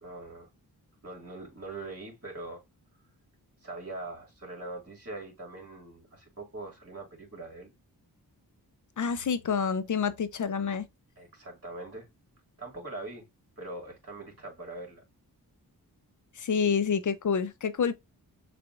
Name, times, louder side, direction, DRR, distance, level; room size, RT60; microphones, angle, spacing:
voice 1, 0.0-0.5 1.0-2.6 3.6-7.7 11.2-12.1 12.6-13.3 13.6-15.0, right 2 dB, 35° right, 2.3 m, -42 dB
voice 2, 9.0-10.8 16.4-17.9, left 6 dB, 50° left, 0.6 m, -28 dB
6.6 x 2.5 x 2.4 m
cardioid pair, 65°, 40 cm